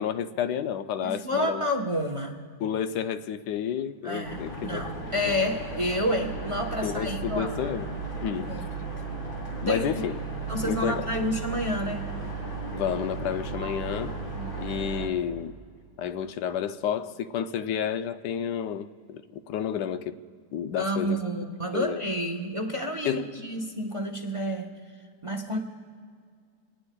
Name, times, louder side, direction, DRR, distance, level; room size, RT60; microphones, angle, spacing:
voice 1, 0.0-1.6 2.6-4.8 5.2-5.4 6.8-7.9 8.2-8.5 9.6-10.2 10.6-11.1 12.7-14.2 14.6-15.6 16.0-20.2 20.5-21.2 21.7-22.0 23.0-23.3, left 8 dB, 85° left, 1.2 m, -30 dB
voice 2, 1.0-2.4 4.0-7.5 8.5-8.7 9.7-9.8 10.5-12.1 14.3-14.5 20.8-24.7 25.2-25.6, equal, 25° right, 0.8 m, -29 dB
sound 1, 4.2-15.1, right 3 dB, 60° left, 3.9 m, -35 dB
27.0 x 19.5 x 2.3 m
omnidirectional pair, 1.8 m